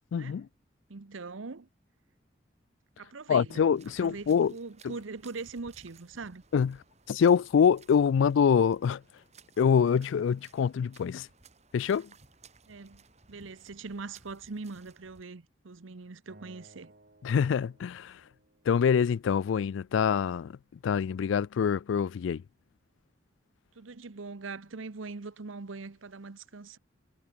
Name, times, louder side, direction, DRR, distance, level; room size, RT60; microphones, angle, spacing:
voice 1, 0.1-0.5 3.3-4.5 6.5-6.8 7.1-9.0 9.6-11.3 11.7-12.1 17.2-18.2 18.7-20.6 20.8-22.4, left 7 dB, 75° left, 0.3 m, -25 dB
voice 2, 0.9-1.7 3.0-3.6 4.0-6.4 12.7-16.9 23.7-26.8, right 4 dB, 90° right, 0.9 m, -42 dB
sound 1, 3.5-15.2, right 4 dB, 35° right, 5.1 m, -59 dB
Acoustic guitar, 16.3-19.5, right 1 dB, 50° right, 5.3 m, -59 dB
head